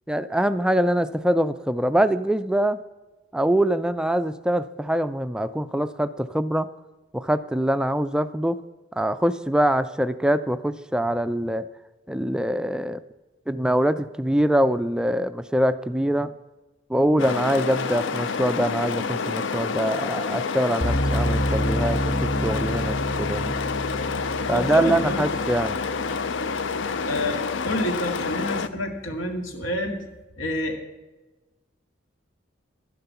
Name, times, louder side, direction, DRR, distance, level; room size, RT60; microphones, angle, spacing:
voice 1, 0.1-2.8 3.3-6.7 7.1-8.6 8.9-11.7 12.1-13.0 13.5-16.3 16.9-23.5 24.5-25.8, right 1 dB, 5° right, 12 dB, 0.3 m, -24 dB
sound 1, 17.2-28.7, left 5 dB, 65° left, 0.6 m, -28 dB
sound 2, 20.8-27.9, equal, 30° left, 2.1 m, -29 dB
voice 2, 24.5-25.4 27.1-30.0 30.4-30.8, equal, 85° left, 4 dB, 2.1 m, -28 dB
12.0 x 10.5 x 5.8 m, 1.2 s
head